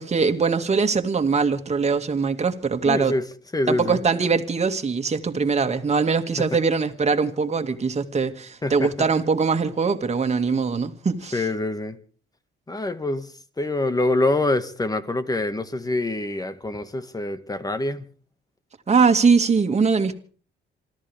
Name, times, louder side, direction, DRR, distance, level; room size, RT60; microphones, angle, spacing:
voice 1, 0.0-3.1 3.7-11.4 18.9-20.2, right 5 dB, 35° right, 2.3 m, -22 dB
voice 2, 2.8-3.3 3.5-4.0 6.4-6.6 8.6-9.1 11.3-12.0 12.7-18.1, left 2 dB, 20° left, 1.9 m, -25 dB
27.5 x 13.5 x 3.6 m
cardioid pair, 90°, 20 cm